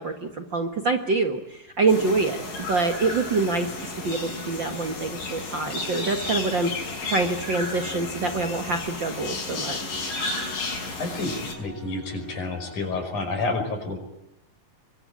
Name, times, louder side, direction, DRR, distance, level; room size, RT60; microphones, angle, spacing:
voice 1, 0.0-2.4 2.7-6.7 7.1-10.0, right 3 dB, 45° right, 5 dB, 1.8 m, -26 dB
sound 1, 1.9-11.5, left 3 dB, 80° left, 7.4 m, -33 dB
sound 2, 3.5-13.3, left 2 dB, 20° left, 6.9 m, -44 dB
voice 2, 11.0-11.3 11.6-14.0, left 3 dB, 65° left, 6 dB, 6.9 m, -29 dB
26.0 x 23.0 x 9.8 m, 0.86 s
omnidirectional pair, 3.8 m